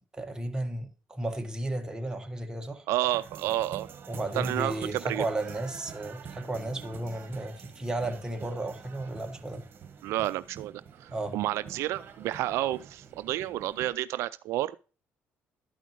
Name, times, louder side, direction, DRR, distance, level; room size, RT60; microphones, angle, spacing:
voice 1, 0.1-2.9 4.1-9.6 11.1-11.3, right 1 dB, 15° right, 1.6 m, -34 dB
voice 2, 2.9-3.9 4.3-5.3 10.0-14.8, right 15 dB, 85° right, 0.4 m, -30 dB
sound 1, 3.1-13.9, right 7 dB, 50° right, 1.7 m, -47 dB
12.0 x 5.0 x 4.5 m
cardioid pair, 100°, 5 cm